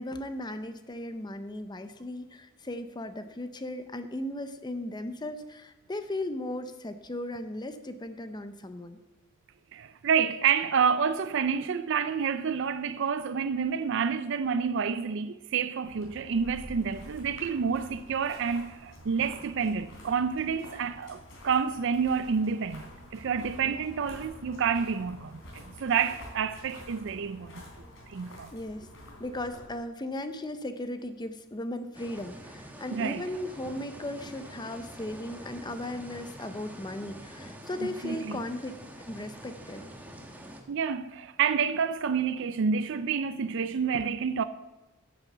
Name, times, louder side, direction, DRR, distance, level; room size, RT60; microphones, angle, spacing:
voice 1, 0.0-9.0 23.6-23.8 28.5-28.9 29.2-38.7 39.1-39.8, left 1 dB, 20° left, 0.6 m, -37 dB
voice 2, 9.7-27.5 28.1-28.5 32.9-33.2 37.8-38.4 40.7-44.4, right 6 dB, 60° right, 0.4 m, -29 dB
sound 1, 15.8-29.7, left 1 dB, 70° left, 3.6 m, -49 dB
sound 2, 16.3-27.5, left 1 dB, 55° left, 1.9 m, -55 dB
sound 3, 31.9-40.6, right 1 dB, 10° right, 1.1 m, -46 dB
9.9 x 7.2 x 6.7 m
head